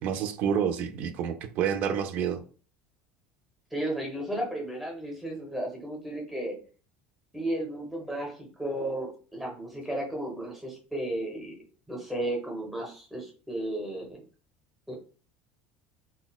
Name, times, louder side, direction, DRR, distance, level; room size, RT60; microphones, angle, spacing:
voice 1, 0.0-2.4, right 8 dB, 40° right, 9 dB, 0.3 m, -28 dB
voice 2, 3.7-6.6 7.3-11.5 11.9-14.2 14.9-15.0, right 1 dB, ahead, -1 dB, 0.7 m, -34 dB
3.8 x 2.1 x 2.2 m, 0.39 s
cardioid pair, 175°, 4 cm